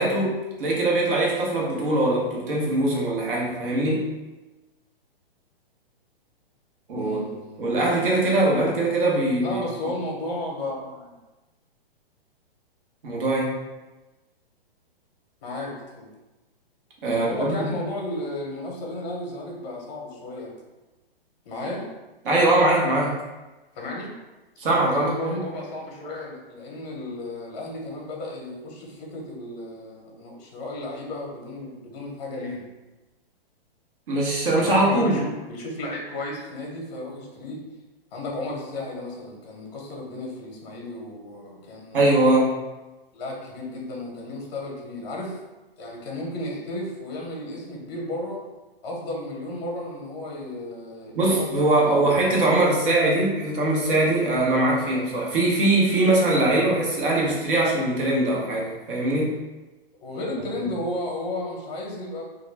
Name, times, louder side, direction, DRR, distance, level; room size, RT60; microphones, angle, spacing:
voice 1, 0.0-4.0 6.9-7.2 7.6-9.6 13.0-13.6 17.0-17.7 22.2-23.2 24.6-25.4 34.1-35.2 41.9-42.6 51.1-59.3, right 2 dB, 60° right, -3 dB, 1.0 m, -22 dB
voice 2, 7.0-7.7 9.4-11.1 15.4-16.1 17.0-20.5 21.4-21.8 23.7-24.1 24.9-32.6 34.5-37.6 38.1-42.1 43.1-45.4 45.8-48.4 48.8-52.5 60.0-62.2, left 1 dB, 45° left, -2 dB, 0.7 m, -34 dB
2.3 x 2.1 x 3.2 m, 1.1 s
hypercardioid pair, 150°, 30 cm